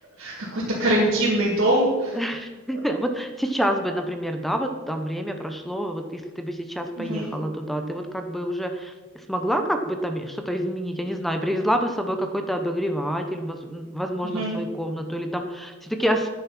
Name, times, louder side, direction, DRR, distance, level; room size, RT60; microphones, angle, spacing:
voice 1, 0.2-2.2 7.0-7.3 14.2-14.6, right 1 dB, 55° right, -9 dB, 3.0 m, -23 dB
voice 2, 2.1-8.9 9.3-16.3, equal, ahead, 6 dB, 0.8 m, -27 dB
10.5 x 9.6 x 6.0 m, 1.3 s
head